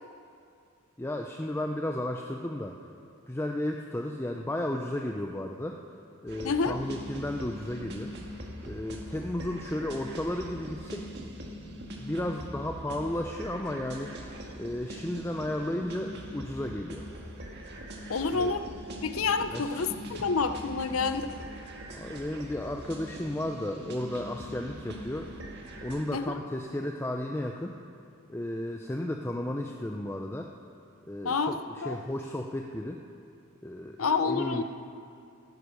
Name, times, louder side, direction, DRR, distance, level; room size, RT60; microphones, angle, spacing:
voice 1, 1.0-2.8 3.3-5.9 6.2-8.1 8.6-11.1 11.9-14.2 14.6-17.1 18.3-18.6 19.5-19.8 20.2-20.3 21.9-25.3 25.8-27.7 28.3-30.5 31.1-33.0 33.6-34.0 34.2-34.6, left 1 dB, 10° left, 2 dB, 0.5 m, -33 dB
sound 1, 6.3-26.0, equal, 50° right, 1.7 m, -42 dB
voice 2, 18.1-18.6 19.0-21.3 26.1-26.3 31.2-31.5 31.8-32.0 34.0-34.6, left 4 dB, 80° left, 9 dB, 0.7 m, -28 dB
15.5 x 10.0 x 6.5 m, 2.4 s
head